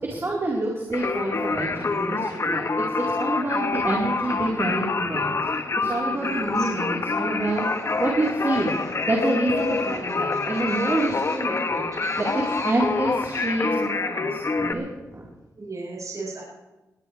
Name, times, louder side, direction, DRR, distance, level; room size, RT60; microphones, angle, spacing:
voice 1, 0.0-2.7 3.2-8.8 9.1-11.8 12.2-14.9 15.1-15.2, right 2 dB, 40° right, -4 dB, 4.4 m, -27 dB
Singing, 0.9-14.7, left 3 dB, 45° left, 1.5 m, -26 dB
voice 2, 6.1-6.5 10.3-10.4 10.7-11.4 12.0-12.7 15.6-16.4, right 3 dB, 55° right, -5 dB, 7.8 m, -38 dB
21.0 x 18.0 x 3.5 m, 1.1 s
cardioid pair, 70°, 7 cm